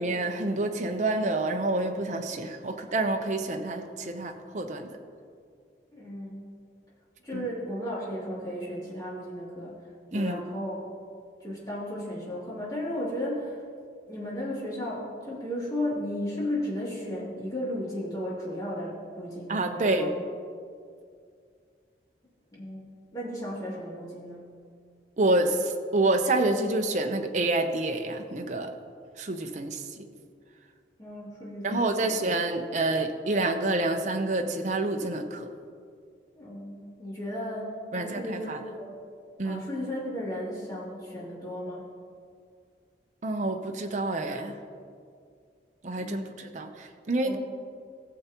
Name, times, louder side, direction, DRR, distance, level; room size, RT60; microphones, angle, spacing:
voice 1, 0.0-4.9 7.3-7.5 10.1-10.4 19.5-20.1 25.2-28.7 29.2-29.8 31.6-35.5 37.9-38.6 39.4-39.7 43.2-44.6 45.8-47.4, right 2 dB, 45° right, 4 dB, 0.7 m, -28 dB
voice 2, 5.9-6.5 7.2-9.8 10.1-10.8 11.4-13.6 14.1-20.1 22.5-24.5 31.0-32.2 36.3-38.9 39.4-41.8 46.0-46.4 47.2-47.4, left 1 dB, 20° left, -7 dB, 2.7 m, -34 dB
17.0 x 7.0 x 3.0 m, 2.2 s
head